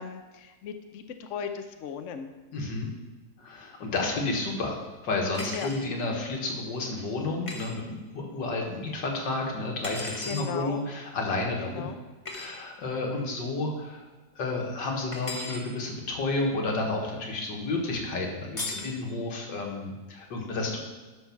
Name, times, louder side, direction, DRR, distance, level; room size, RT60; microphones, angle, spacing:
voice 1, 0.0-2.3 5.5-5.7 10.3-10.8 11.6-12.0, left 7 dB, 60° left, 7 dB, 0.8 m, -37 dB
voice 2, 2.5-2.9 3.4-4.8 5.0-7.8 8.1-11.8 12.3-14.0 14.4-20.8, left 2 dB, 75° left, 0 dB, 2.2 m, -31 dB
sound 1, 5.3-5.8 7.5-7.7 9.8-10.5 12.3-12.5 15.1-15.6 18.6-18.9, left 2 dB, 20° left, 1.0 m, -36 dB
12.5 x 4.7 x 5.8 m, 1.3 s
omnidirectional pair, 1.9 m